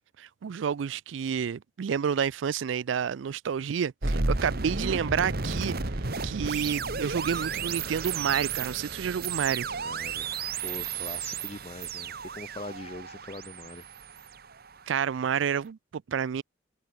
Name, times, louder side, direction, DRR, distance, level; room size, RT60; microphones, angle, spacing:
voice 1, 0.2-5.8 6.2-9.7 14.9-16.4, right 7 dB, 80° right, 0.4 m, -29 dB
sound 1, 4.0-15.0, right 4 dB, 55° right, 1.6 m, -33 dB
voice 2, 9.7-10.3 10.6-13.8, left 2 dB, 35° left, 1.3 m, -42 dB
head